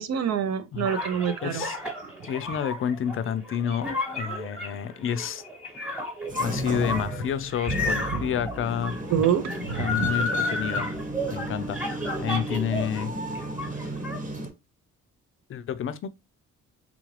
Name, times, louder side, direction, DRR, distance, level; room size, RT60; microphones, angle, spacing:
voice 1, 0.0-1.7 8.1-8.2 9.1-10.1, right 8 dB, 60° right, 0.5 m, -26 dB
sound 1, 0.8-13.0 13.3-14.2, left 2 dB, 5° right, 1.2 m, -32 dB
voice 2, 1.4-1.8 2.2-5.4 6.4-9.0 9.8-10.9 11.3-13.2 15.5-16.1, left 8 dB, 45° left, 0.4 m, -29 dB
sound 2, 6.3-14.5, right 1 dB, 25° right, 1.1 m, -34 dB
3.6 x 2.4 x 3.1 m
cardioid pair, 90°, 30 cm